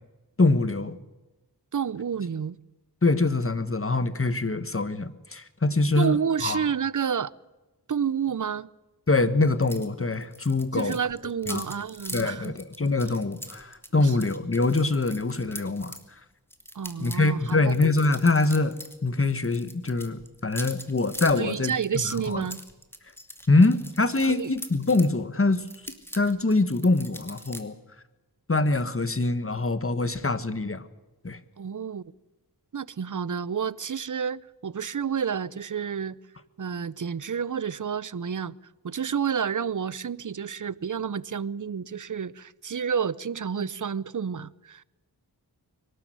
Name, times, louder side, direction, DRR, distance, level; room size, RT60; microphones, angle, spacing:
voice 1, 0.4-1.0 3.0-6.7 9.1-11.0 11.5-11.6 12.1-16.0 17.0-18.8 19.0-21.7 22.3-22.4 23.5-25.7 26.1-27.7 28.5-30.8 31.2-31.4, left 3 dB, 35° left, 1.4 m, -24 dB
voice 2, 1.7-2.6 6.0-7.3 7.9-8.7 10.7-12.5 14.0-14.2 16.7-17.8 21.4-22.6 24.2-24.5 31.6-32.0 32.7-36.2 36.6-38.5 38.8-44.8, right 7 dB, 50° right, 0.7 m, -30 dB
sound 1, 9.6-9.9 10.1-16.0 16.5-19.0 19.2-25.1 25.5-27.6, equal, 5° left, 2.5 m, -42 dB
23.0 x 12.5 x 9.3 m
cardioid pair, 40°, 40 cm